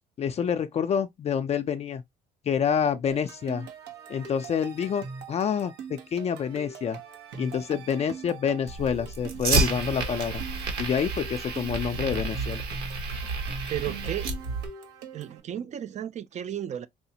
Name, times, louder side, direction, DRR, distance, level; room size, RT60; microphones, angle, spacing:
voice 1, 0.2-2.0 2.5-3.7 4.1-7.0 7.4-10.4 10.8-12.6, left 7 dB, 40° left, 0.4 m, -28 dB
sound 1, 3.1-15.4, right 5 dB, 85° right, 1.0 m, -42 dB
Fire, 8.7-14.7, right 3 dB, 70° right, 1.3 m, -30 dB
voice 2, 13.7-14.3 15.1-16.9, right 11 dB, 45° right, 0.4 m, -33 dB
4.7 x 2.1 x 2.7 m
cardioid pair, 110°, 17 cm